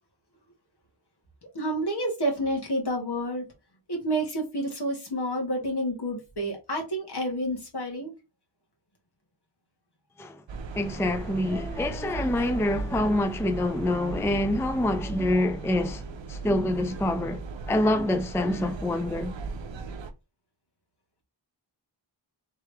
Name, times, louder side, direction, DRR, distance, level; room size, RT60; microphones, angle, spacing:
voice 1, 1.5-3.5 3.9-8.1, right 1 dB, 60° left, 1.6 m, -29 dB
sound 1, 10.5-20.1, right 3 dB, 80° right, 0.6 m, -37 dB
voice 2, 10.7-16.0 16.3-17.4 17.7-19.3, left 1 dB, 5° left, 0.4 m, -26 dB
3.6 x 3.1 x 3.3 m
wide cardioid pair, 45°, 45 cm